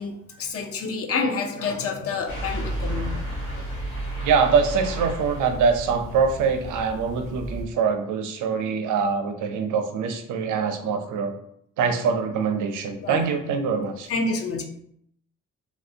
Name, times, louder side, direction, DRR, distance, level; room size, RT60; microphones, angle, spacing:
voice 1, 0.0-3.2 13.0-13.2 14.1-14.6, left 4 dB, 50° left, 3 dB, 0.5 m, -28 dB
sound 1, 2.3-7.6, right 1 dB, 90° left, 1.1 m, -32 dB
voice 2, 4.2-11.3 11.8-14.1, right 5 dB, 85° right, 6 dB, 0.5 m, -24 dB
3.1 x 2.5 x 2.6 m, 0.71 s
cardioid pair, 120°, 30 cm